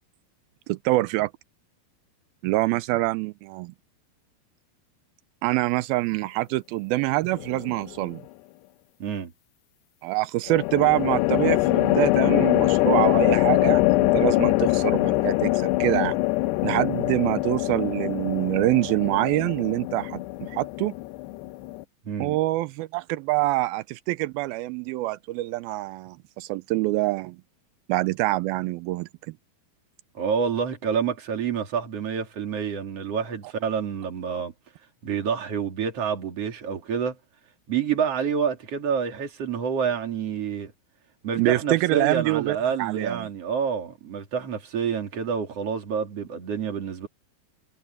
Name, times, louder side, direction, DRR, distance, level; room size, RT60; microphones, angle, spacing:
voice 1, 0.7-1.3 2.4-3.7 5.4-8.2 10.0-16.2 16.6-20.2 20.5-20.9 22.2-27.4 27.9-29.1 41.4-43.3, right 19 dB, 90° right, 2.2 m, -25 dB
sound 1, 7.4-7.9 10.5-21.8, left 20 dB, 90° left, 2.9 m, -23 dB
voice 2, 9.0-9.3 22.0-22.4 30.1-34.5 35.0-37.1 37.7-40.7 41.2-47.1, right 7 dB, 40° right, 3.3 m, -28 dB
omnidirectional pair, 4.9 m